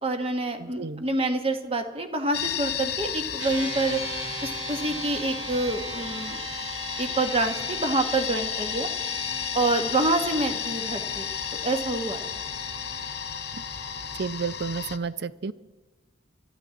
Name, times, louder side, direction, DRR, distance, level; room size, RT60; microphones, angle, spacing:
voice 1, 0.0-4.0 4.4-6.4 7.0-8.9 9.5-11.3 11.6-12.4, right 2 dB, 30° right, 6 dB, 1.2 m, -27 dB
voice 2, 0.6-1.0 13.5-13.6 14.2-15.5, right 5 dB, 60° right, 16 dB, 0.5 m, -31 dB
sound 1, 2.3-15.0, left 8 dB, 55° left, 1.0 m, -33 dB
sound 2, 3.4-14.2, right 2 dB, 90° right, 2.1 m, -39 dB
23.5 x 13.5 x 3.8 m, 1.2 s
head